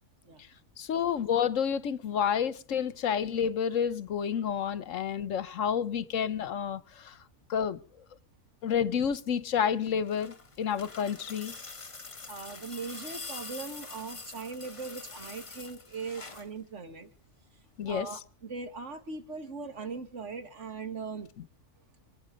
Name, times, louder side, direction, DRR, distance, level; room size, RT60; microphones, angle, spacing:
voice 1, 0.8-7.1 7.5-7.8 8.6-11.5 17.8-18.1, left 8 dB, 65° left, 1.3 m, -29 dB
sound 1, 9.8-16.5 17.8-17.9, left 3 dB, 25° left, 1.0 m, -45 dB
voice 2, 12.3-17.1 17.9-21.3, right 4 dB, 55° right, 2.2 m, -40 dB
26.5 x 9.0 x 5.1 m
omnidirectional pair, 1.5 m